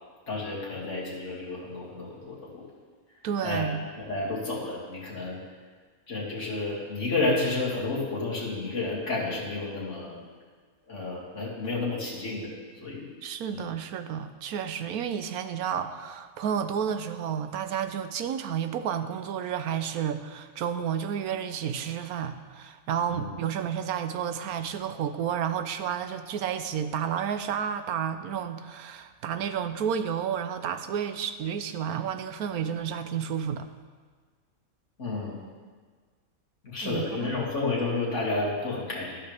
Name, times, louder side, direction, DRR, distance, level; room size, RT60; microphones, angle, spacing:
voice 1, 0.3-2.7 3.4-3.7 4.0-5.4 6.1-10.1 10.9-12.5 12.8-13.1 13.5-13.6 23.1-23.3 35.0-35.4 36.6-39.3, left 3 dB, 55° left, -6 dB, 2.9 m, -31 dB
voice 2, 3.2-3.9 13.2-33.7 36.8-37.3, right 8 dB, 85° right, 10 dB, 1.2 m, -31 dB
13.0 x 12.0 x 3.5 m, 1.5 s
omnidirectional pair, 1.5 m